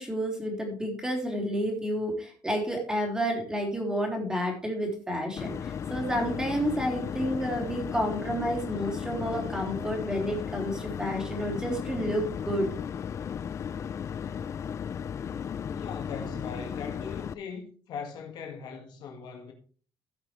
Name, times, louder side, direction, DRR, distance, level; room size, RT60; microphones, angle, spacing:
voice 1, 0.0-12.7, equal, 10° right, 3.4 m, -30 dB
sound 1, 5.4-17.3, left 8 dB, 40° left, 0.5 m, -35 dB
voice 2, 15.7-19.5, left 5 dB, 65° left, 2.0 m, -40 dB
17.0 x 5.9 x 3.3 m
cardioid pair, 140°, 8 cm